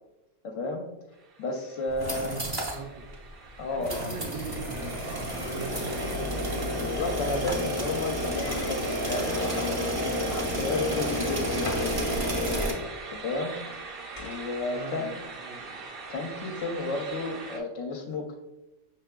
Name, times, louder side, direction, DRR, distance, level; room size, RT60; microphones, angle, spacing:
voice 1, 0.4-0.8 1.4-2.3 3.6-4.2 6.8-12.1 13.1-13.5 14.2-15.1 16.1-18.3, left 3 dB, 75° left, 1 dB, 0.9 m, -32 dB
sound 1, 1.1-17.6, right 4 dB, 55° right, 0.8 m, -43 dB
sound 2, 1.9-2.8 3.1-3.2 3.8-12.7, equal, 25° right, 0.5 m, -30 dB
voice 2, 2.0-3.0 3.7-6.2 7.2-7.8 14.6-15.8, right 4 dB, 80° right, -4 dB, 1.8 m, -41 dB
sound 3, 8.4-10.1 11.1-12.0 14.2-14.4, left 2 dB, 35° left, 0.6 m, -39 dB
5.7 x 3.6 x 2.2 m, 1.0 s
omnidirectional pair, 1.3 m